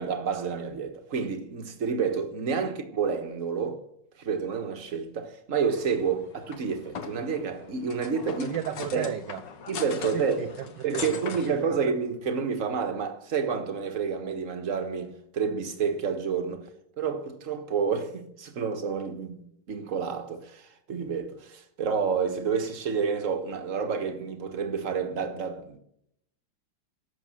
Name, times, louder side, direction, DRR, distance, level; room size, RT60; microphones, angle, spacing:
voice 1, 0.0-3.8 4.2-8.5 8.9-9.1 9.7-10.5 10.8-16.7 17.0-25.8, right 6 dB, 40° right, 1.6 m, -29 dB
sound 1, 5.7-11.6, left 6 dB, 60° left, 1.8 m, -40 dB
voice 2, 8.4-9.4 10.1-11.2, right 10 dB, 70° right, 1.2 m, -34 dB
12.0 x 7.5 x 8.9 m
omnidirectional pair, 2.3 m